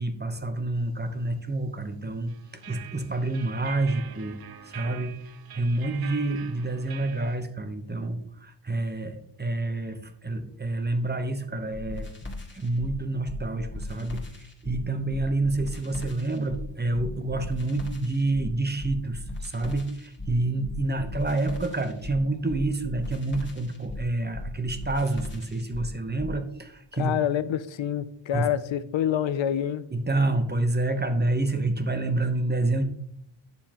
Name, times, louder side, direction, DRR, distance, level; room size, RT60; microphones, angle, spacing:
voice 1, 0.0-2.3 2.7-5.1 5.5-12.1 12.5-27.2 28.3-28.5 29.9-32.8, right 2 dB, 20° right, 0.8 m, -28 dB
sound 1, 2.3-7.4, right 9 dB, 55° right, 0.6 m, -44 dB
sound 2, 11.7-26.4, left 2 dB, 25° left, 1.8 m, -37 dB
voice 2, 26.9-29.9, left 10 dB, 85° left, 0.6 m, -27 dB
9.5 x 6.8 x 2.9 m
wide cardioid pair, 110°, 45 cm